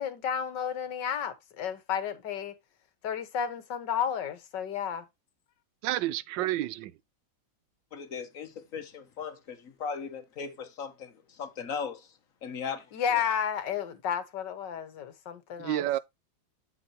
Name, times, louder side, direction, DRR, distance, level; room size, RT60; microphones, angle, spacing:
voice 1, 0.0-2.5 3.0-5.0 12.9-16.0, left 8 dB, 70° left, 1.8 m, -32 dB
voice 2, 5.8-6.9 15.6-16.0, right 14 dB, 80° right, 1.3 m, -29 dB
voice 3, 7.9-12.1 12.4-13.2, left 6 dB, 45° left, 1.6 m, -38 dB
8.5 x 7.0 x 2.8 m
omnidirectional pair, 2.0 m